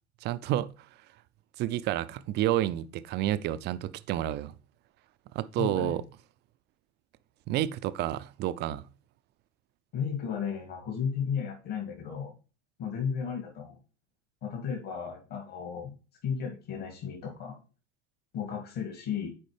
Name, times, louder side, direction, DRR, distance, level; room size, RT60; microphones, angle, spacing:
voice 1, 0.2-0.7 1.6-4.5 5.3-6.0 7.5-8.9, right 13 dB, 30° right, 0.4 m, -30 dB
voice 2, 5.6-5.9 9.9-12.3 12.8-13.8 14.4-15.9 16.2-17.6 18.3-19.3, left 7 dB, 50° left, 2.0 m, -34 dB
8.6 x 4.5 x 3.2 m
hypercardioid pair, 85°, 36 cm